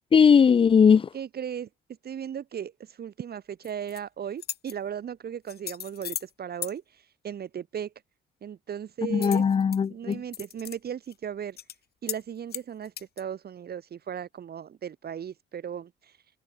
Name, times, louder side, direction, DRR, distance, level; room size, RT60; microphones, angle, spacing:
voice 1, 0.1-1.1 9.1-10.2, left 6 dB, 25° left, 0.4 m, -19 dB
voice 2, 1.1-1.7 2.0-7.9 8.4-9.4 9.9-11.6 12.0-16.2, right 8 dB, 55° right, 1.6 m, -36 dB
sound 1, 3.6-4.0 4.4-4.7 5.5-6.3 6.6-6.7 9.2-9.8 10.1-10.8 11.1-11.2 11.6-11.8 12.1-12.2 12.5-13.2, left 10 dB, 50° left, 0.8 m, -37 dB
cardioid pair, 90°, 20 cm